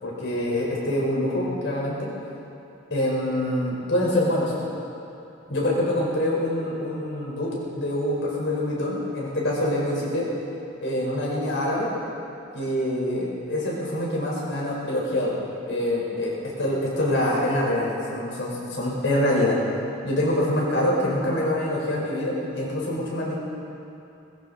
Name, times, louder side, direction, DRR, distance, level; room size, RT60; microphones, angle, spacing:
voice 1, 0.0-2.1 2.9-4.5 5.5-10.3 10.8-11.9 12.5-15.3 15.6-19.6 20.0-23.4, left 1 dB, 75° left, -4 dB, 4.8 m, -25 dB
20.0 x 16.5 x 4.2 m, 2.8 s
head